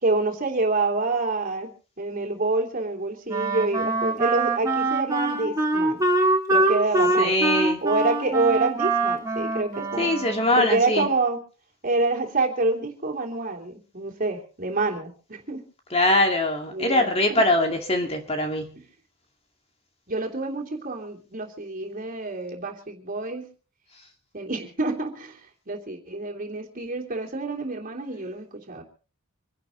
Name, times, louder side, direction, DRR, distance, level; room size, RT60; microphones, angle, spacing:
voice 1, 0.0-1.7 2.0-6.1 6.5-10.1 10.6-11.4 11.8-15.6 16.7-17.4 20.1-23.5 24.3-28.8, right 3 dB, 40° right, 3.1 m, -27 dB
Wind instrument woodwind instrument, 3.3-10.7, right 2 dB, 15° right, 3.1 m, -24 dB
voice 2, 7.2-7.8 10.0-11.1 15.9-18.8, left 1 dB, 30° left, 2.3 m, -22 dB
26.0 x 11.0 x 4.0 m
head